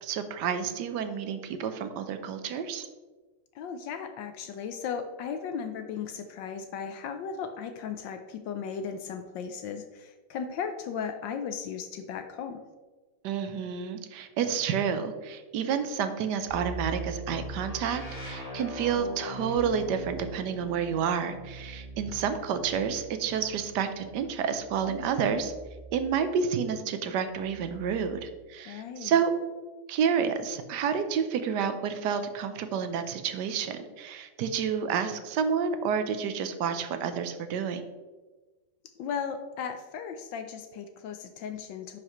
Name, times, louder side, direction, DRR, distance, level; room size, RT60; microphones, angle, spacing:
voice 1, 0.0-2.9 13.2-25.5 25.9-29.3 29.9-37.8, right 7 dB, 70° right, 9 dB, 1.1 m, -29 dB
voice 2, 3.5-12.6 24.9-25.5 28.7-29.1 39.0-42.0, left 7 dB, 75° left, 7 dB, 1.1 m, -36 dB
sound 1, 16.5-26.3 27.3-28.3, right 1 dB, 20° left, 1.6 m, -41 dB
10.5 x 4.9 x 3.0 m, 1.3 s
omnidirectional pair, 2.3 m